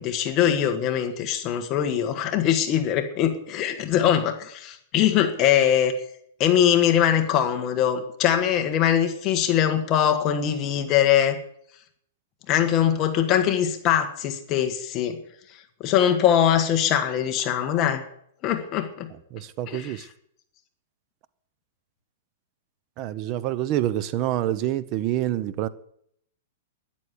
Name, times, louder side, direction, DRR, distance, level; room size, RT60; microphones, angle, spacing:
voice 1, 0.0-5.9 6.4-11.4 12.5-15.2 15.8-18.0 18.4-19.1 19.7-20.0, left 10 dB, 25° left, 1.5 m, -22 dB
voice 2, 19.3-20.1 23.0-25.7, right 13 dB, 30° right, 0.9 m, -27 dB
13.0 x 11.0 x 9.9 m
hypercardioid pair, 165°, 0 cm